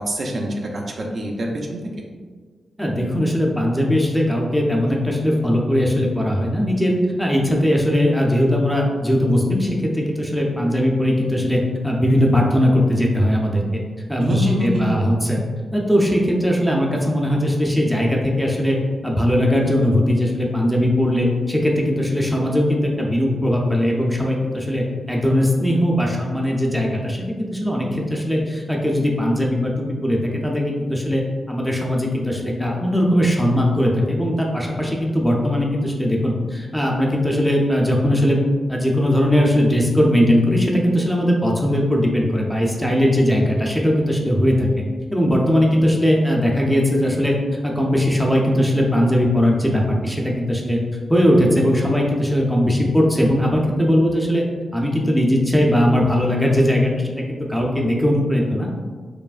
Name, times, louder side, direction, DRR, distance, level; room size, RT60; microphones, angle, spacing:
voice 1, 0.0-1.8 14.2-15.1, right 1 dB, 50° right, 0 dB, 0.5 m, -25 dB
voice 2, 2.8-13.8 14.1-15.4 15.7-18.8 19.0-29.7 30.0-31.2 31.5-38.4 38.7-44.7 45.1-47.4 47.6-50.8 51.1-54.4 54.7-58.7, equal, ahead, -2 dB, 0.5 m, -19 dB
4.7 x 3.0 x 2.4 m, 1.5 s
wide cardioid pair, 120°, 0 cm